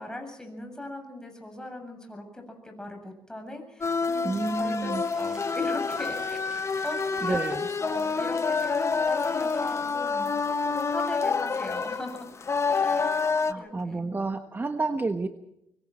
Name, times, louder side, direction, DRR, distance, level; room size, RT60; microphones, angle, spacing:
voice 1, 0.0-6.4 6.8-7.4 7.8-12.3 12.7-13.1 13.5-14.1, left 1 dB, 10° left, 4 dB, 7.7 m, -39 dB
sound 1, 3.8-13.5, left 4 dB, 35° left, 1.2 m, -28 dB
voice 2, 4.2-5.0 7.2-7.7 13.2-15.3, right 3 dB, 25° right, 6 dB, 1.3 m, -30 dB
sound 2, 5.0-10.2, equal, 10° right, 7.2 m, -54 dB
24.5 x 24.0 x 4.4 m, 0.80 s
cardioid pair, 85°, 8 cm